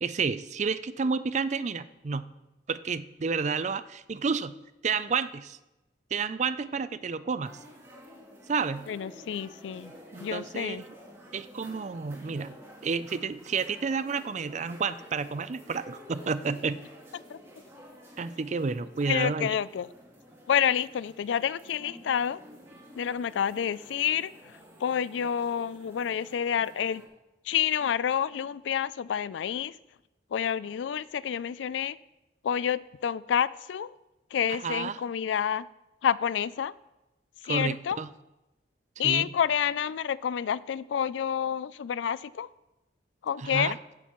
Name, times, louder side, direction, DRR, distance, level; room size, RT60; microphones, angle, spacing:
voice 1, 0.0-2.2 2.7-4.6 4.8-5.6 6.1-7.6 8.5-8.9 10.1-10.9 11.3-12.5 12.8-16.8 18.2-19.5 34.6-35.0 37.4-38.1 39.0-39.3 43.4-43.8, right 5 dB, 40° right, 14 dB, 0.4 m, -30 dB
sound 1, 7.4-27.1, equal, 15° right, 2.6 m, -51 dB
voice 2, 8.9-9.9 10.2-10.8 17.3-17.4 19.1-19.9 20.5-22.4 23.0-24.3 24.8-27.0 27.5-29.8 30.3-32.0 32.4-33.9 34.3-35.7 36.0-36.7 37.5-38.0 39.0-42.5 43.2-43.8, left 8 dB, 80° left, 19 dB, 0.3 m, -28 dB
15.5 x 9.9 x 3.1 m, 0.97 s
head